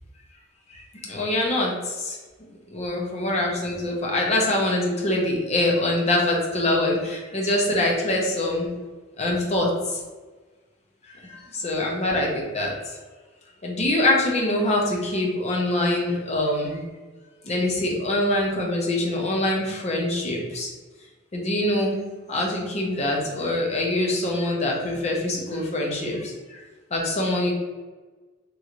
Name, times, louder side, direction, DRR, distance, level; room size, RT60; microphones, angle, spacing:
voice 1, 0.7-2.2 2.7-8.7 9.2-9.7 11.3-12.7 13.6-16.8 17.4-20.7 21.3-22.0 22.3-26.6 26.9-27.5, left 1 dB, 35° left, -1 dB, 0.6 m, -24 dB
3.1 x 2.8 x 2.5 m, 1.3 s
head